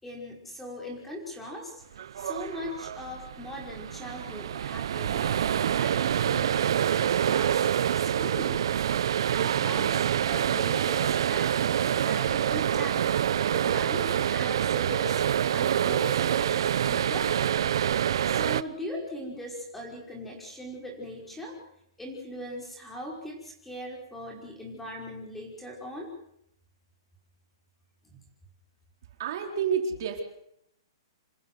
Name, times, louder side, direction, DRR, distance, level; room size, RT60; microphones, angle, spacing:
voice 1, 0.0-1.8 2.2-6.6 7.0-7.7 8.0-8.7 9.3-15.2 15.5-17.6 18.2-21.6 22.0-26.1 28.0-28.2, equal, 5° left, 0 dB, 5.5 m, -40 dB
sound 1, 2.0-18.6, right 9 dB, 65° right, 0.8 m, -26 dB
voice 2, 29.2-30.2, right 7 dB, 50° right, 3 dB, 4.1 m, -29 dB
27.5 x 15.0 x 8.0 m, 0.75 s
hypercardioid pair, 160°, 3 cm